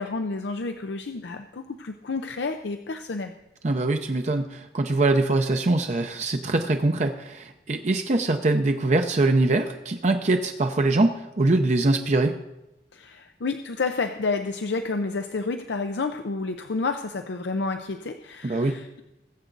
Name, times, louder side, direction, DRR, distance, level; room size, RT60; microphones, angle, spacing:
voice 1, 0.0-3.3 12.9-19.0, left 3 dB, 85° left, 7 dB, 0.6 m, -30 dB
voice 2, 3.6-12.4 18.4-18.8, right 2 dB, 40° right, 5 dB, 0.6 m, -23 dB
20.5 x 8.0 x 3.9 m, 0.92 s
head